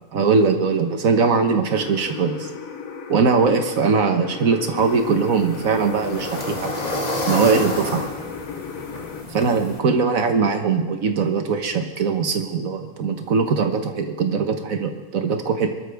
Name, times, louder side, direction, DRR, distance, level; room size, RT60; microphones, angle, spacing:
voice 1, 0.1-2.5 3.1-6.7 7.3-8.0 9.3-15.7, right 5 dB, 80° right, 6 dB, 1.6 m, -21 dB
sound 1, 1.8-9.2, left 6 dB, 80° left, 1.4 m, -35 dB
sound 2, 4.8-9.8, left 1 dB, 30° left, 1.8 m, -30 dB
23.5 x 12.5 x 3.5 m, 1.2 s
omnidirectional pair, 1.4 m